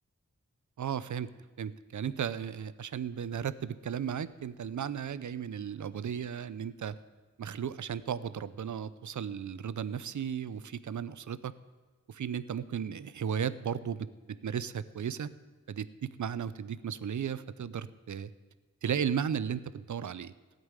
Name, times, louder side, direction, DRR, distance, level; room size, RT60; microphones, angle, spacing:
voice 1, 0.8-1.3 1.6-7.0 7.4-11.5 12.1-15.3 15.7-18.3 18.8-20.3, right 8 dB, 80° right, 16 dB, 0.6 m, -35 dB
16.0 x 5.4 x 9.6 m, 1.3 s
wide cardioid pair, 75°, 29 cm